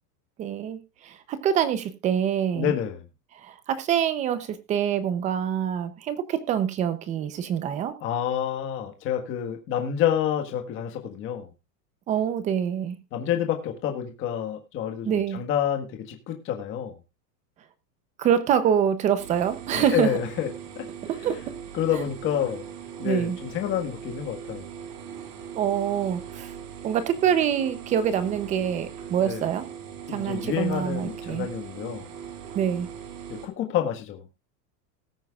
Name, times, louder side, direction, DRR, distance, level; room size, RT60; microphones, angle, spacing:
voice 1, 0.4-2.7 3.3-7.9 12.1-13.0 15.0-15.4 18.2-20.1 21.1-21.4 21.9-22.0 23.0-23.4 25.5-26.5 26.8-29.7 30.1-31.5 32.5-32.9, right 9 dB, 15° right, 13 dB, 0.7 m, -25 dB
voice 2, 2.5-3.0 8.0-11.5 13.1-16.9 19.7-20.5 20.7-20.9 21.7-22.7 23.0-24.7 29.2-29.4 30.1-32.1 33.3-34.2, left 9 dB, 25° left, 5 dB, 1.6 m, -28 dB
sound 1, 19.2-33.5, right 8 dB, 80° right, 4.2 m, -40 dB
19.5 x 9.1 x 2.4 m, 0.24 s
supercardioid pair, 175°, 48 cm